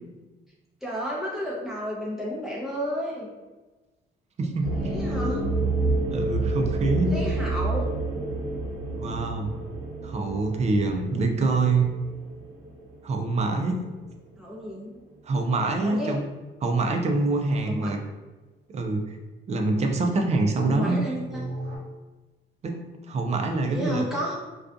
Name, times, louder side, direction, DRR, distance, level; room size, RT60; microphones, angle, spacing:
voice 1, 0.8-3.3 4.8-5.4 7.1-7.9 14.4-15.0 15.8-16.1 17.7-17.9 20.6-21.4 23.7-24.4, equal, ahead, -6 dB, 0.8 m, -32 dB
voice 2, 4.4-5.0 6.1-7.2 8.9-9.5 10.0-11.9 13.0-13.8 15.2-16.3 16.6-18.0 18.7-19.2 19.5-21.1 22.6-24.0, right 3 dB, 35° right, 3 dB, 0.4 m, -25 dB
sound 1, 4.6-14.1 14.4-14.5 14.7-14.8 21.2-21.8, right 2 dB, 75° right, 0.7 m, -30 dB
2.4 x 2.3 x 2.5 m, 1.2 s
cardioid pair, 90°, 20 cm